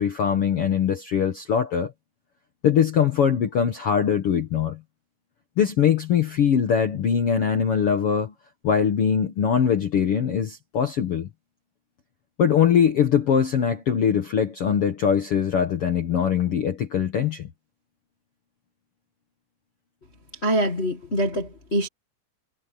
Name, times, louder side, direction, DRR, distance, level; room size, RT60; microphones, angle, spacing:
voice 1, 0.0-1.9 2.6-4.8 5.6-8.3 8.6-11.3 12.4-17.5, left 8 dB, 70° left, 1.4 m, -22 dB
voice 2, 20.4-21.9, right 1 dB, 50° left, 0.7 m, -24 dB
omnidirectional pair, 4.4 m